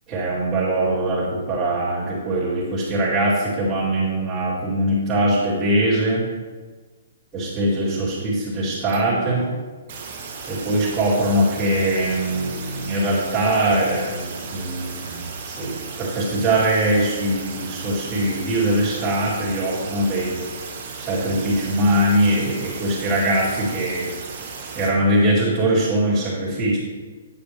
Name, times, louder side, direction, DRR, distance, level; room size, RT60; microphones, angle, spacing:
voice 1, 0.1-6.3 7.3-9.4 10.5-15.2 15.4-20.4 21.0-24.1 24.8-26.8, right 1 dB, 10° right, -11 dB, 2.2 m, -22 dB
sound 1, 8.9-9.6 9.9-24.9, right 5 dB, 40° right, 1.2 m, -35 dB
8.4 x 7.4 x 3.3 m, 1.4 s
hypercardioid pair, 165°, 0 cm